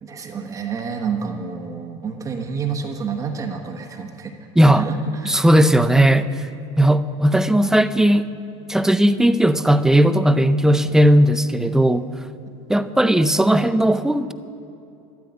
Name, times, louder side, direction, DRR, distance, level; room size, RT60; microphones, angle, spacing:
voice 1, 0.0-4.3 4.7-5.4, right 6 dB, 25° right, 2 dB, 1.2 m, -29 dB
voice 2, 5.3-6.3 6.8-8.3 8.7-12.1 12.7-14.3, right 1 dB, 5° right, 11 dB, 0.5 m, -16 dB
13.0 x 12.0 x 9.0 m, 2.7 s
supercardioid pair, 145°, 14 cm